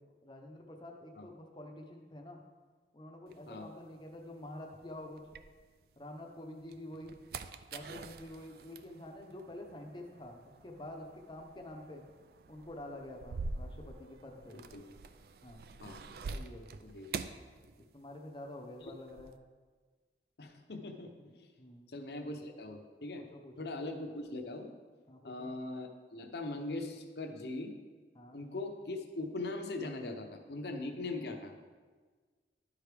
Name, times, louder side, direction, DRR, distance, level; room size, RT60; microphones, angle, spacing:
voice 1, 0.0-2.4 2.9-5.2 6.0-7.2 7.7-12.0 12.5-14.6 15.4-15.6 16.3-16.9 17.9-19.4 21.6-21.9 23.2-23.7 25.1-25.5 28.1-28.4, left 1 dB, 25° left, 2 dB, 0.7 m, -48 dB
sound 1, 3.3-6.1 6.5-18.3 18.5-19.4, right 4 dB, 60° right, 0.3 m, -46 dB
voice 2, 14.5-14.9 15.8-16.1 16.8-17.1 18.8-18.9 20.4-21.5 21.9-23.2 23.6-24.7 25.2-27.8 28.3-31.5, left 2 dB, 70° left, 4 dB, 0.8 m, -41 dB
11.5 x 4.8 x 3.4 m, 1.5 s
head